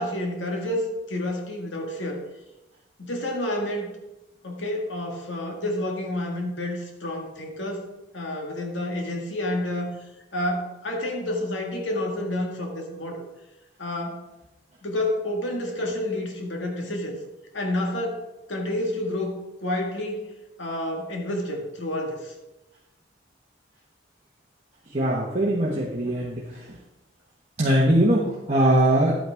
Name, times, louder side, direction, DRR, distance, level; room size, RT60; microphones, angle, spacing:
voice 1, 0.0-2.2 3.0-3.9 4.4-7.9 8.1-10.0 10.3-13.2 13.8-14.3 14.8-17.2 17.5-20.3 20.6-22.3, left 1 dB, 80° left, 1 dB, 1.9 m, -29 dB
voice 2, 24.9-26.8 27.6-29.2, right 1 dB, 35° right, -5 dB, 1.3 m, -21 dB
11.0 x 8.9 x 3.6 m, 0.98 s
head